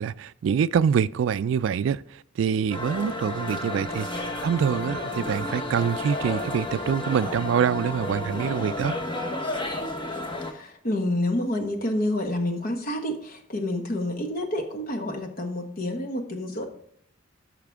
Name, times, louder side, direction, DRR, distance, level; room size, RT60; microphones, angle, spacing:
voice 1, 0.0-9.0, right 7 dB, 70° right, 0.3 m, -25 dB
sound 1, 2.7-10.5, left 1 dB, 25° left, 1.1 m, -32 dB
voice 2, 10.5-16.7, left 1 dB, 50° left, 1.2 m, -28 dB
13.5 x 5.8 x 3.5 m
head